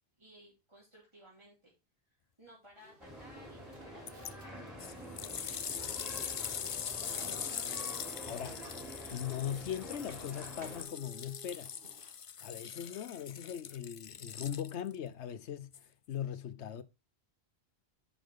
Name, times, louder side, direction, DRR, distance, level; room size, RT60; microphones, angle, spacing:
voice 1, 0.2-1.7 2.1-5.6 5.9-7.2, right 1 dB, 25° right, 2.7 m, -59 dB
sound 1, 2.8-12.2, right 1 dB, 55° right, 1.8 m, -56 dB
sound 2, 3.0-10.8, equal, ahead, 3.2 m, -47 dB
sound 3, 4.1-4.3 4.8-15.0 15.7-15.8, left 8 dB, 60° left, 0.3 m, -42 dB
voice 2, 8.2-8.7 9.1-11.7 12.4-16.8, left 9 dB, 90° left, 1.1 m, -40 dB
10.5 x 5.0 x 3.6 m
omnidirectional pair, 1.1 m